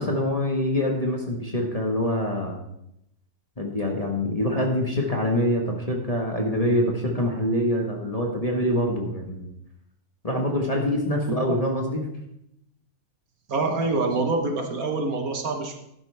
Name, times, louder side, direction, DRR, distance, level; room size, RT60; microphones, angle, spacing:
voice 1, 0.0-2.6 3.6-9.5 10.2-12.1, left 1 dB, 25° left, 0 dB, 1.3 m, -25 dB
voice 2, 11.2-11.5 13.5-15.8, right 3 dB, 60° right, 3 dB, 1.5 m, -26 dB
12.0 x 9.7 x 3.4 m, 0.80 s
omnidirectional pair, 1.8 m